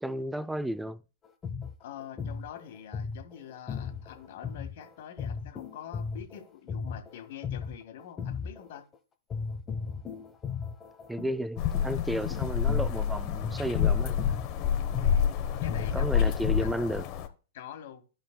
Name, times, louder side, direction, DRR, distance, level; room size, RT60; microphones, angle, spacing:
voice 1, 0.0-1.0 11.1-14.3 15.9-17.0, right 1 dB, 5° right, 0.3 m, -33 dB
sound 1, 1.2-8.9 9.3-16.9, left 5 dB, 20° left, 0.9 m, -37 dB
voice 2, 1.8-8.8 15.0-15.3 15.6-16.9 17.5-18.0, left 9 dB, 60° left, 1.7 m, -45 dB
sound 2, 11.6-17.3, left 8 dB, 40° left, 1.1 m, -28 dB
13.5 x 5.2 x 2.2 m
hypercardioid pair, 115°, 0 cm